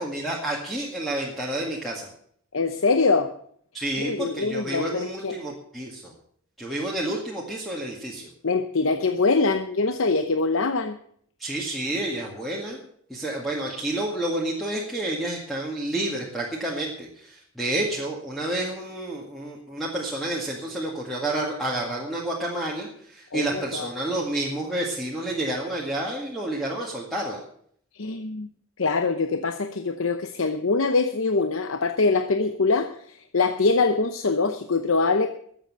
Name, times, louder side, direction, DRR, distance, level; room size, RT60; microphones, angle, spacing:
voice 1, 0.0-2.1 3.7-6.1 6.6-8.3 11.4-12.8 13.1-27.4, right 1 dB, ahead, -3 dB, 2.0 m, -29 dB
voice 2, 2.5-3.3 4.0-5.4 8.4-11.0 23.3-23.9 27.9-28.5 28.8-35.3, left 3 dB, 70° left, 8 dB, 0.8 m, -23 dB
13.5 x 7.8 x 7.8 m, 0.63 s
head